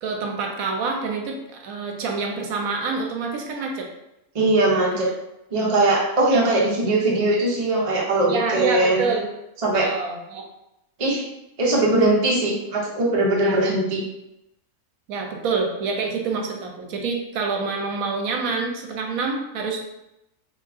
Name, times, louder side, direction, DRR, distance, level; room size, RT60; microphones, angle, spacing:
voice 1, 0.0-3.9 4.9-5.0 5.6-5.7 6.3-6.4 8.3-9.3 9.7-10.4 13.4-13.6 15.1-19.8, right 4 dB, 75° right, 2 dB, 1.0 m, -27 dB
voice 2, 4.3-5.1 5.5-9.0 9.6-9.9 11.0-11.2 11.6-14.0, right 2 dB, 45° right, -3 dB, 0.4 m, -20 dB
2.7 x 2.3 x 3.5 m, 0.88 s
omnidirectional pair, 1.6 m